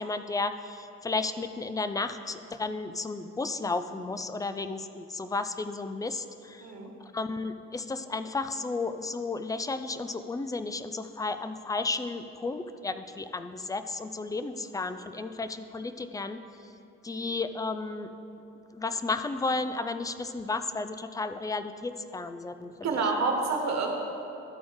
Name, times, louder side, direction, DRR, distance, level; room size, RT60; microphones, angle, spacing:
voice 1, 0.0-6.7 7.1-16.4 17.0-18.1 18.7-23.0, left 3 dB, 10° left, 10 dB, 0.3 m, -33 dB
voice 2, 6.6-6.9 22.8-23.9, right 4 dB, 60° right, 2 dB, 1.4 m, -28 dB
12.5 x 4.2 x 4.7 m, 2.9 s
cardioid pair, 90°, 30 cm